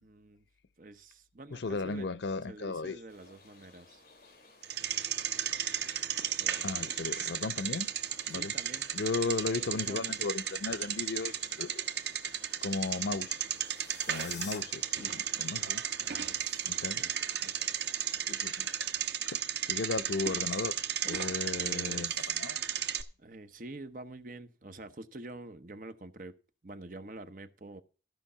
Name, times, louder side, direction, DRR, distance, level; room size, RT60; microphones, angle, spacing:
voice 1, 0.0-0.5 0.8-2.1 2.5-4.0 6.4-6.9 8.3-8.9 9.2-10.3 15.6-15.7 16.0-17.1 17.4-17.5 21.6-22.4 23.2-27.8, right 2 dB, 50° right, 0.9 m, -47 dB
voice 2, 1.5-3.0 6.6-7.9 8.3-8.5 8.9-11.8 12.6-13.4 14.1-15.8 16.1-16.2 16.7-17.0 18.3-18.7 19.3-19.4 19.7-20.8 21.0-22.6, left 4 dB, 90° left, 0.6 m, -35 dB
sound 1, 3.1-18.9, left 2 dB, 55° left, 4.8 m, -58 dB
Bicycle, 4.6-23.0, right 9 dB, 80° right, 1.0 m, -34 dB
sound 2, 13.5-14.6, left 4 dB, 40° left, 3.1 m, -46 dB
14.0 x 5.3 x 5.6 m
head